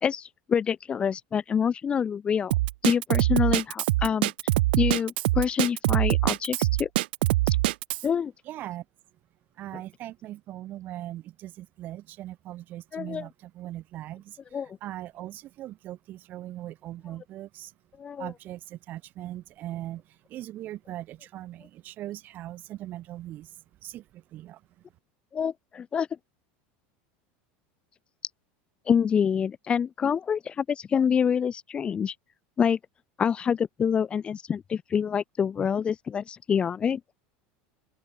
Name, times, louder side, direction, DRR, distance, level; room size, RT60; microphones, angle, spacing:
voice 1, 0.0-2.5 2.8-4.3 4.8-6.9 7.5-7.6 8.0-8.3 9.7-9.8 12.9-13.3 14.5-14.8 18.0-18.3 25.3-26.1 28.9-32.1 32.6-32.8 33.2-37.0, left 7 dB, 20° left, 1.7 m, -26 dB
Drum kit, 2.5-8.1, right 18 dB, 90° right, 4.0 m, -24 dB
voice 2, 8.5-8.8 9.6-14.4 14.8-17.7 18.2-20.0 20.3-23.5 23.8-24.6, right 14 dB, 35° right, 4.3 m, -40 dB
open air
supercardioid pair, 165°, 5 cm